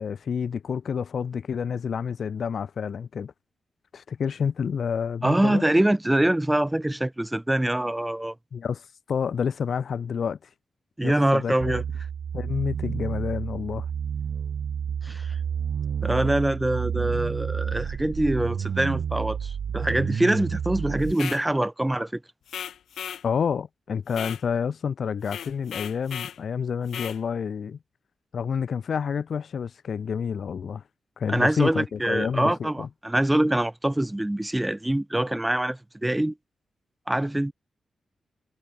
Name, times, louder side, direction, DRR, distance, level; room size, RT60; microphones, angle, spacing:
voice 1, 0.0-3.3 3.9-5.6 8.5-10.5 11.0-11.8 12.3-13.9 23.2-27.8 28.3-30.8 31.2-32.9, left 7 dB, 55° left, 0.4 m, -29 dB
voice 2, 5.2-8.3 11.0-11.8 15.0-15.4 16.0-22.2 31.3-36.3 37.1-37.5, right 1 dB, 10° right, 1.4 m, -24 dB
sound 1, 11.6-21.1, right 7 dB, 65° right, 0.4 m, -30 dB
sound 2, 21.1-21.4 22.5-23.2 24.1-24.4 25.2-26.4 26.9-27.2, left 9 dB, 90° left, 1.1 m, -36 dB
wide cardioid pair, 160°, 0 cm